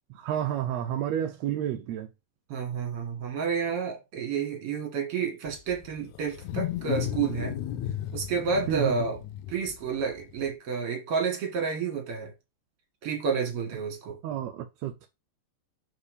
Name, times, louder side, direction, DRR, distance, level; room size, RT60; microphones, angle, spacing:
voice 1, 0.1-2.1 8.7-9.0 14.2-15.1, right 11 dB, 75° right, 1.8 m, -30 dB
voice 2, 2.5-7.6 8.1-9.2 9.5-12.3 13.0-14.2, right 5 dB, 55° right, 2.8 m, -30 dB
Wild animals, 5.5-10.5, left 11 dB, 85° left, 1.9 m, -34 dB
4.8 x 4.8 x 4.9 m
omnidirectional pair, 3.3 m